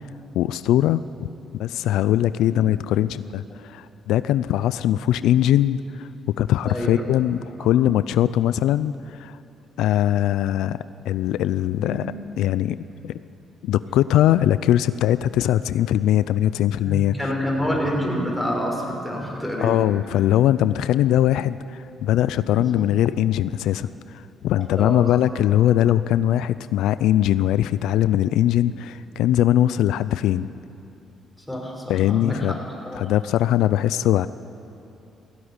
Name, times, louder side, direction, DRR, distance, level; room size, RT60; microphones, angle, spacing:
voice 1, 0.3-1.3 1.6-6.1 6.4-9.4 9.8-10.8 11.1-12.8 13.0-13.1 13.6-17.2 19.6-30.5 31.9-32.6 33.0-34.3, left 12 dB, 90° left, 15 dB, 0.4 m, -21 dB
voice 2, 6.6-7.1 7.5-7.6 11.8-12.0 16.8-19.8 22.3-22.8 24.7-25.1 31.5-33.1, equal, ahead, -2 dB, 6.1 m, -28 dB
17.0 x 16.0 x 9.8 m, 2.7 s
cardioid pair, 90°, 0 cm